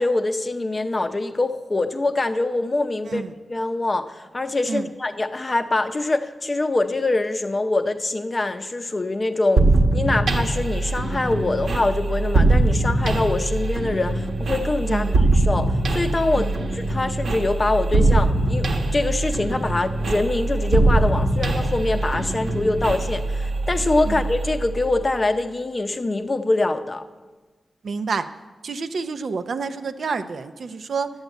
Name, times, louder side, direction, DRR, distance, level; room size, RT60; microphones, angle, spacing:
voice 1, 0.0-3.2 3.5-9.6 9.9-27.0, left 2 dB, 25° left, 8 dB, 0.6 m, -24 dB
voice 2, 3.0-3.3 4.7-4.9 14.9-15.2 16.3-16.6 24.0-24.3 27.8-28.3 28.6-31.1, right 4 dB, 65° right, 10 dB, 0.6 m, -28 dB
sound 1, 9.6-25.2, right 2 dB, 85° right, 1.4 m, -22 dB
11.5 x 7.9 x 8.2 m, 1.3 s
wide cardioid pair, 165°, 0 cm